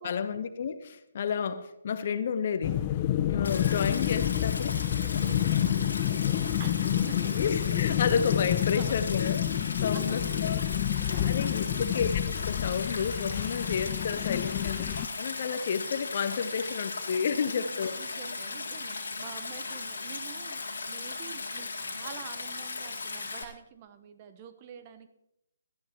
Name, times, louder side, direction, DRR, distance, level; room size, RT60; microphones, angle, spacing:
voice 1, 0.0-2.8 3.3-4.8 5.1-6.4 6.8-9.4 9.8-10.6 11.0-14.9 15.2-18.0, left 6 dB, 45° left, 11 dB, 0.8 m, -31 dB
sound 1, 2.6-15.1, left 13 dB, 30° left, 0.4 m, -29 dB
Stream, 3.4-23.4, left 3 dB, 65° left, 1.8 m, -37 dB
voice 2, 6.6-7.5 8.7-9.3 9.9-10.9 11.7-12.0 17.4-25.1, right 8 dB, 30° right, 9 dB, 0.9 m, -47 dB
17.5 x 12.5 x 2.9 m, 0.84 s
figure-of-eight pair, 140°, 0 cm